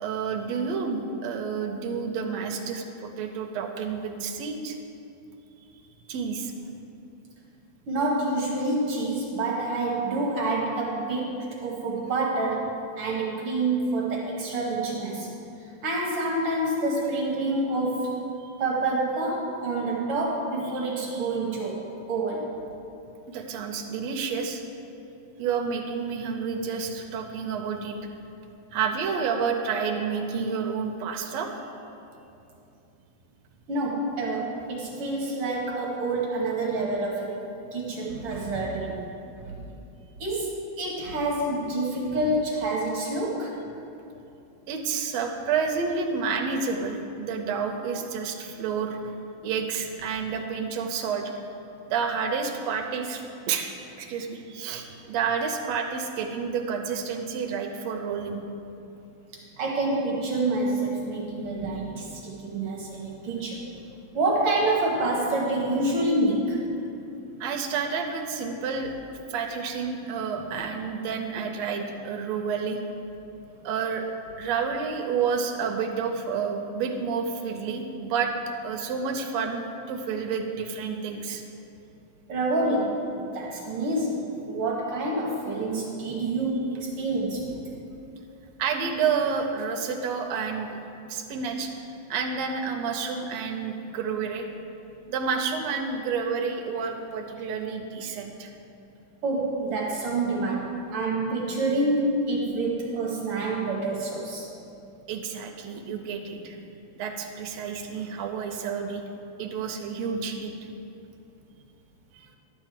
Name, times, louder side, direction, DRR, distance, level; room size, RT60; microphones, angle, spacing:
voice 1, 0.0-4.8 6.1-6.5 18.4-18.5 20.7-21.2 23.3-24.6 25.4-28.0 28.7-31.6 44.7-49.0 49.4-51.3 51.9-53.7 54.0-58.4 67.4-68.9 69.3-72.8 73.6-74.0 74.4-78.3 78.6-81.4 88.6-90.8 91.1-94.5 95.1-98.5 105.1-106.6 107.0-109.0 109.4-110.5 112.1-112.3, right 6 dB, 75° right, 4 dB, 1.8 m, -30 dB
voice 2, 7.9-15.3 15.8-18.1 18.6-22.5 33.7-37.4 37.7-39.1 39.4-39.7 40.2-43.6 59.6-63.7 64.1-66.6 70.5-70.6 82.3-87.6 99.2-104.5 107.9-108.1, right 2 dB, 55° right, -3 dB, 1.9 m, -27 dB
12.0 x 4.4 x 7.5 m, 2.8 s
omnidirectional pair, 3.4 m